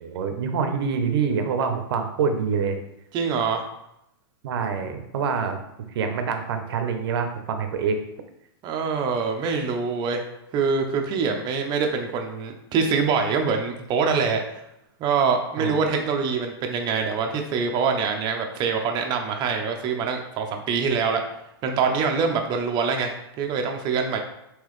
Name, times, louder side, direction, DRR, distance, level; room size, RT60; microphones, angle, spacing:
voice 1, 0.0-2.8 4.4-5.6 5.9-8.0 15.6-15.8, right 6 dB, 70° right, 7 dB, 0.7 m, -26 dB
voice 2, 3.1-3.6 8.6-10.2 10.5-14.6 15.0-21.2 21.6-24.2, right 5 dB, 35° right, 4 dB, 0.6 m, -24 dB
3.8 x 2.9 x 3.1 m, 0.83 s
hypercardioid pair, 125°, 13 cm